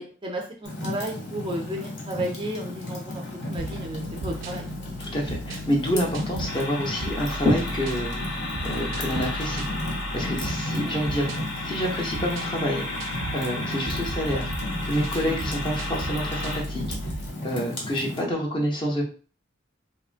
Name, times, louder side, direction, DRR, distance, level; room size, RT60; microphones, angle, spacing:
voice 1, 0.0-5.0 10.8-11.0 15.2-15.4, right 1 dB, 25° right, 0 dB, 0.4 m, -33 dB
Fire, 0.6-18.2, left 1 dB, 60° left, 0.9 m, -35 dB
sound 1, 3.6-17.3, right 1 dB, 75° right, 0.5 m, -36 dB
voice 2, 5.0-8.1 8.6-9.6 10.1-11.3 11.6-12.8 13.3-14.5 14.8-16.8 17.4-19.0, equal, 25° left, -1 dB, 0.6 m, -27 dB
sound 2, 6.5-16.6, left 2 dB, 85° left, 0.8 m, -34 dB
3.0 x 2.4 x 2.4 m, 0.39 s
head